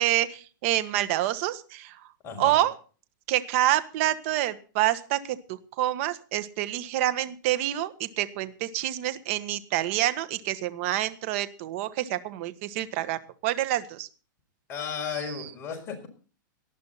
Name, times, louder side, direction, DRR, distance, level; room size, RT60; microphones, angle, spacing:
voice 1, 0.0-2.0 2.4-2.7 3.3-14.1, right 14 dB, 40° right, 14 dB, 1.6 m, -27 dB
voice 2, 2.2-2.6 14.7-16.1, left 6 dB, 20° left, 2 dB, 5.7 m, -34 dB
19.0 x 12.5 x 4.2 m, 0.38 s
supercardioid pair, 165°, 11 cm